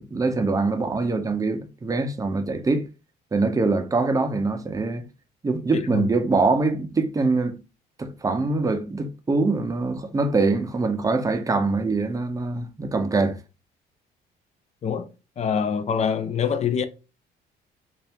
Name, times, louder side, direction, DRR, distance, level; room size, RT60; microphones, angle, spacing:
voice 1, 0.0-2.9 3.3-5.0 5.4-7.6 8.0-13.4, right 3 dB, 20° right, 0.7 m, -24 dB
voice 2, 5.7-6.1 14.8-15.1 15.4-16.8, left 7 dB, 40° left, 0.6 m, -25 dB
4.2 x 2.5 x 3.5 m
cardioid pair, 110°, 17 cm